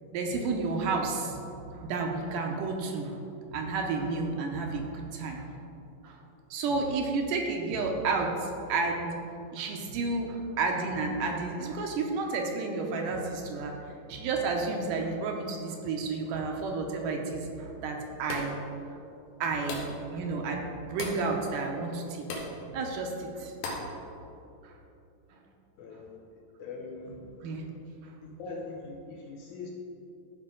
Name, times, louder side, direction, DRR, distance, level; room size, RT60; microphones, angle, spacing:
voice 1, 0.1-3.2 3.5-5.5 6.0-6.2 6.5-9.1 9.5-13.8 14.1-18.6 19.4-23.8 24.6-24.7 27.4-27.6, right 3 dB, 75° right, 2 dB, 2.3 m, -31 dB
sound 1, 18.3-18.7 19.7-20.0 21.0-21.3 22.3-22.6 23.6-24.0, left 2 dB, 90° left, 2.8 m, -36 dB
voice 2, 25.8-27.3 28.2-29.7, left 3 dB, 75° left, 0 dB, 1.9 m, -42 dB
13.0 x 5.2 x 3.8 m, 2.7 s
omnidirectional pair, 4.0 m